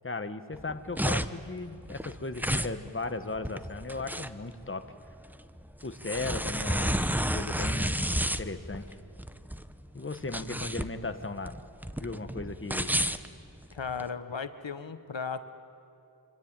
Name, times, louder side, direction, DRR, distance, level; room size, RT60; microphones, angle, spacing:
voice 1, 0.0-4.8 5.8-8.1 8.4-9.0 9.9-11.6 12.0-12.9, left 3 dB, 25° left, 9 dB, 1.4 m, -36 dB
sound 1, 0.5-14.1, equal, 5° right, 0.9 m, -32 dB
voice 2, 13.7-15.5, left 5 dB, 75° left, 11 dB, 1.2 m, -36 dB
26.0 x 25.5 x 8.9 m, 2.7 s
wide cardioid pair, 65°, 45 cm